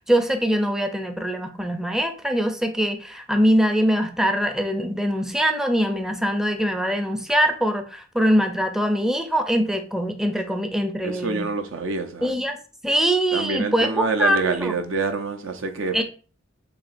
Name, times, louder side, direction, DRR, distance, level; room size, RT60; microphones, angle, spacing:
voice 1, 0.0-11.5 12.2-12.6 12.8-14.7 15.9-16.0, equal, ahead, 0.5 m, -23 dB
voice 2, 11.0-12.3 13.3-16.0, right 4 dB, 75° right, 0.7 m, -26 dB
7.1 x 2.8 x 2.6 m
head